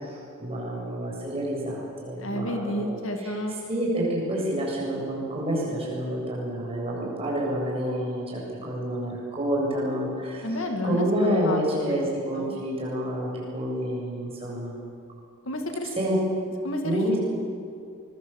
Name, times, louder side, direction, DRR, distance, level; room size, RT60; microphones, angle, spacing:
voice 1, 0.0-2.9 3.2-3.3 3.7-10.5 10.8-14.7 16.0-16.2 16.8-17.2, equal, 25° right, -4 dB, 7.7 m, -28 dB
voice 2, 2.2-3.5 10.4-12.0 12.4-12.6 15.5-15.9 16.6-17.0, left 1 dB, 60° left, 3 dB, 2.5 m, -30 dB
24.5 x 22.0 x 7.3 m, 2.4 s
head